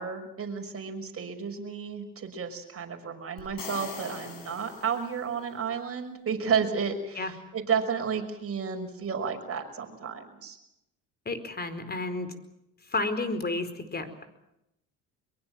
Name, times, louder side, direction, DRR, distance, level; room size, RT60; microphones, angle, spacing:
voice 1, 0.0-10.6, right 6 dB, 40° right, 5 dB, 5.8 m, -32 dB
sound 1, 3.4-5.5, left 5 dB, 85° left, 7.1 m, -42 dB
voice 2, 11.2-12.4 12.9-14.2, left 2 dB, 25° left, 11 dB, 4.6 m, -31 dB
23.5 x 23.0 x 7.6 m, 0.84 s
supercardioid pair, 75°, 35 cm